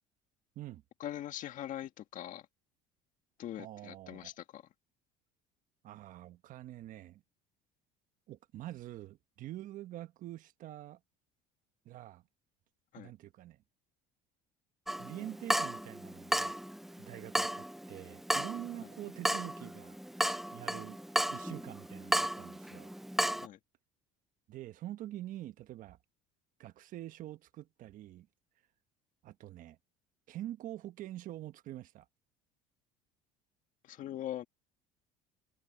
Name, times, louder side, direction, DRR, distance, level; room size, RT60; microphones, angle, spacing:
voice 1, 1.0-2.5 3.4-4.6 12.9-13.1 18.8-18.9 23.4-23.6 33.8-34.4, left 12 dB, 55° left, 1.9 m, -42 dB
voice 2, 3.6-4.3 5.8-7.2 8.3-11.0 11.8-12.2 13.0-13.6 15.0-16.6 17.0-20.0 20.5-21.0 21.3-22.9 24.5-26.0 26.6-28.3 29.2-29.8 30.3-32.0, right 14 dB, 55° right, 1.2 m, -45 dB
Water tap faucet / Drip, 14.9-23.5, right 1 dB, ahead, 0.4 m, -34 dB
cardioid pair, 115°, 16 cm